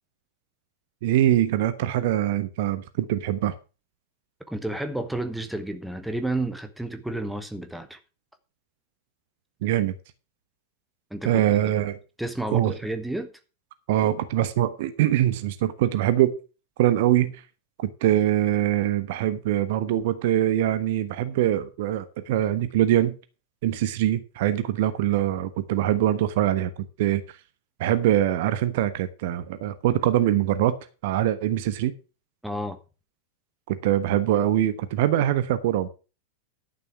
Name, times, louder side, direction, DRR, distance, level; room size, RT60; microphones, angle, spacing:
voice 1, 1.0-3.5 9.6-9.9 11.2-12.0 12.5-12.7 13.9-16.3 16.8-17.4 17.8-23.2 23.6-26.7 27.0-27.2 27.8-30.8 31.0-31.9 33.7-35.9, right 12 dB, 50° right, 1.2 m, -23 dB
voice 2, 4.5-8.0 11.1-11.7 12.2-13.3 32.4-32.8, right 1 dB, ahead, 1.4 m, -31 dB
11.5 x 6.9 x 6.0 m
figure-of-eight pair, 90°, 0 cm